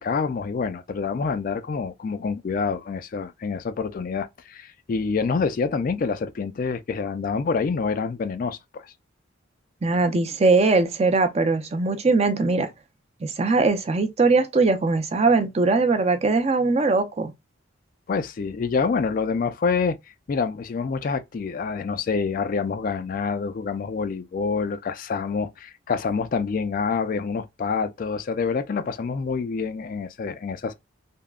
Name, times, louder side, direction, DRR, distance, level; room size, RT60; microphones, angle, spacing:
voice 1, 0.0-8.9 18.1-20.0 20.3-30.7, left 5 dB, 45° left, 0.3 m, -27 dB
voice 2, 9.8-12.7 13.2-17.3, right 3 dB, 30° right, 0.4 m, -21 dB
3.5 x 2.0 x 2.3 m
head